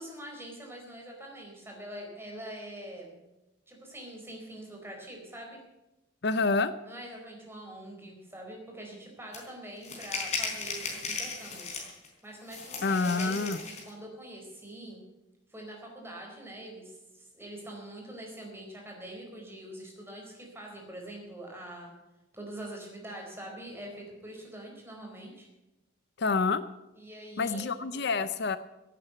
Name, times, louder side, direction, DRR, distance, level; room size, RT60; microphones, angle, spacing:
voice 1, 0.0-3.2 3.7-5.6 6.9-11.7 12.2-15.0 15.5-21.9 22.3-25.5 27.0-27.7, right 1 dB, 10° right, 0 dB, 4.5 m, -44 dB
voice 2, 6.2-6.7 12.8-13.6 26.2-26.6 27.4-28.6, left 4 dB, 55° left, 13 dB, 0.6 m, -27 dB
sound 1, 9.3-9.4 9.8-12.1 12.5-13.9, left 4 dB, 35° left, 4.2 m, -36 dB
16.5 x 9.1 x 8.0 m, 0.99 s
head